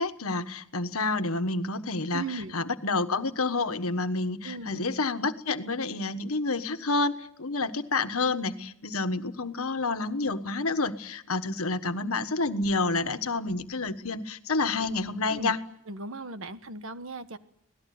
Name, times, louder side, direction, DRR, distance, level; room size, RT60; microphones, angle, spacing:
voice 1, 0.0-2.2 2.5-15.6, left 3 dB, 90° left, 9 dB, 1.4 m, -29 dB
voice 2, 2.1-2.5 4.4-4.9 15.3-15.5 15.9-17.4, right 3 dB, 70° right, 11 dB, 1.4 m, -37 dB
25.5 x 18.5 x 9.5 m, 0.72 s
head